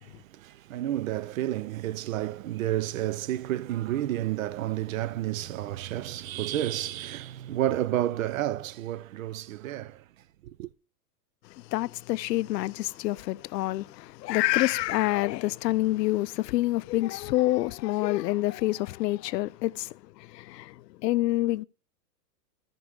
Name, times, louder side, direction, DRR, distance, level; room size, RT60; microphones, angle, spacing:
voice 1, 0.0-10.0 10.4-10.7, right 13 dB, 55° right, 0.5 m, -31 dB
voice 2, 11.5-21.6, left 16 dB, 80° left, 0.5 m, -27 dB
13.5 x 5.3 x 4.7 m
supercardioid pair, 165°, 48 cm